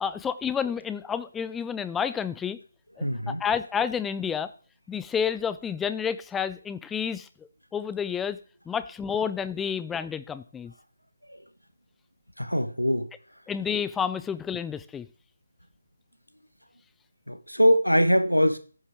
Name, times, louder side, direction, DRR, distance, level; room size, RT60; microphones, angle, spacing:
voice 1, 0.0-2.6 3.0-4.5 4.9-7.3 7.7-8.4 8.7-10.7 13.5-15.1, left 7 dB, 5° left, 13 dB, 0.3 m, -30 dB
voice 2, 3.0-3.4 11.3-11.4 12.4-13.1 17.3-18.6, equal, 90° left, 10 dB, 1.0 m, -22 dB
9.4 x 5.5 x 3.4 m, 0.38 s
figure-of-eight pair, 150°, 0 cm